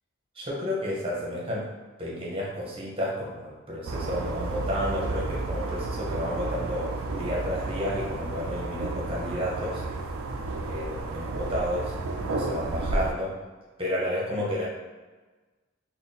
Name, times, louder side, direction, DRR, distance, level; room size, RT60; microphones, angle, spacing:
voice 1, 0.3-1.7 2.0-9.8 10.6-11.9 12.3-13.3 13.8-14.7, equal, 25° right, -4 dB, 0.9 m, -31 dB
sound 1, 3.9-13.1, right 2 dB, 80° right, 0.4 m, -32 dB
3.6 x 2.2 x 4.0 m, 1.3 s
head